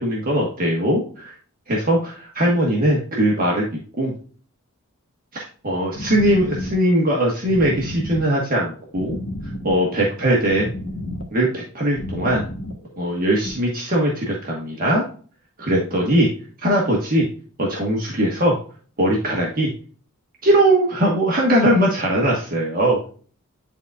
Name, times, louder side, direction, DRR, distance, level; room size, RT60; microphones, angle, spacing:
voice 1, 0.0-1.3 1.7-3.7 4.0-4.1 5.3-9.2 9.6-10.7 11.3-12.4 13.0-15.0 15.6-16.3 16.6-17.3 17.6-18.6 19.0-19.7 20.4-23.0, right 1 dB, 40° right, -2 dB, 1.4 m, -20 dB
sound 1, 6.0-13.5, left 1 dB, 60° left, 1.2 m, -33 dB
10.0 x 4.0 x 2.4 m, 0.42 s
head